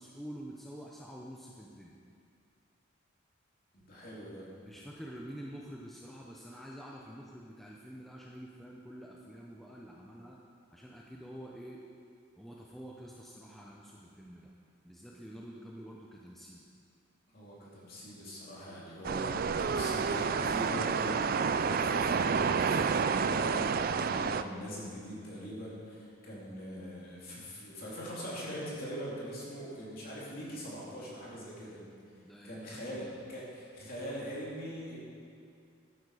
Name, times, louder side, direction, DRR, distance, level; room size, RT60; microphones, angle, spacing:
voice 1, 0.0-2.0 4.6-10.4 10.7-11.8 12.4-14.5 14.8-16.6 32.2-33.2, equal, ahead, -3 dB, 0.7 m, -47 dB
voice 2, 3.8-4.5 17.3-31.8 32.4-35.0, equal, 45° left, -6 dB, 3.1 m, -42 dB
sound 1, 19.0-24.4, right 5 dB, 45° right, 0.3 m, -29 dB
12.0 x 10.5 x 4.9 m, 2.3 s
head